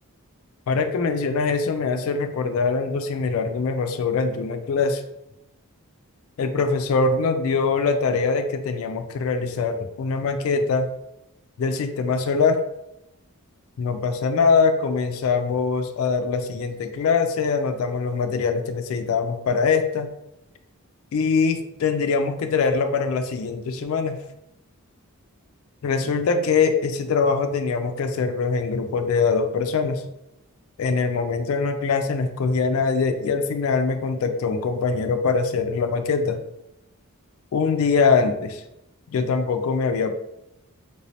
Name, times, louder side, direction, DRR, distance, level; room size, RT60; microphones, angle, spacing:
voice 1, 0.7-5.0 6.4-10.9 11.6-12.6 13.8-20.1 21.1-24.2 25.8-30.0 30.8-36.4 37.5-38.6 39.1-40.2, left 4 dB, 70° left, 7 dB, 0.3 m, -23 dB
3.3 x 2.7 x 3.1 m, 0.87 s
head